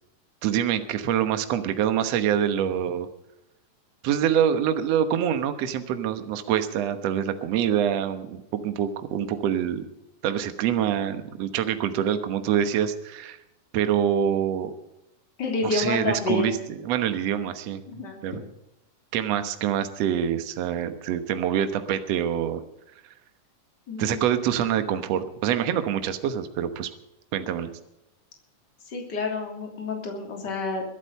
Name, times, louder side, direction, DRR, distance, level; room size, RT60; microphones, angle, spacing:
voice 1, 0.4-3.1 4.0-9.9 10.2-13.4 13.7-14.7 15.6-18.4 19.1-22.6 24.0-26.9 27.3-27.7, right 9 dB, 60° right, 9 dB, 2.0 m, -25 dB
voice 2, 15.4-16.5 17.9-18.4 23.9-24.2 28.9-30.8, left 3 dB, 30° left, 1 dB, 3.5 m, -29 dB
23.0 x 8.3 x 5.5 m, 0.88 s
omnidirectional pair, 3.7 m